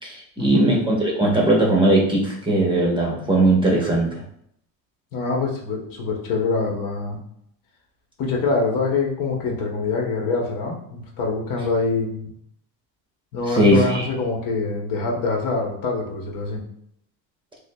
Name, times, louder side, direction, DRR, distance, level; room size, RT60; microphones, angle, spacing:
voice 1, 0.0-4.1 13.5-14.1, right 1 dB, 10° right, -3 dB, 0.8 m, -19 dB
voice 2, 5.1-7.2 8.2-12.3 13.3-16.6, left 3 dB, 55° left, 0 dB, 1.0 m, -25 dB
6.1 x 2.0 x 2.2 m, 0.71 s
supercardioid pair, 115°, 42 cm